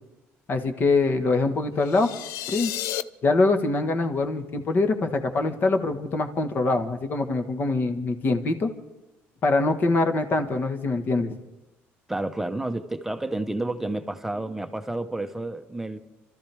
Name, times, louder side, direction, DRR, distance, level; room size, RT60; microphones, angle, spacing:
voice 1, 0.5-2.1 2.5-2.7 3.2-8.7 9.4-11.3, left 3 dB, 40° left, 1.5 m, -24 dB
sound 1, 1.8-3.0, left 12 dB, 80° left, 0.5 m, -32 dB
voice 2, 12.1-16.0, right 2 dB, 5° right, 0.9 m, -30 dB
29.0 x 13.5 x 3.5 m
cardioid pair, 130°, 5 cm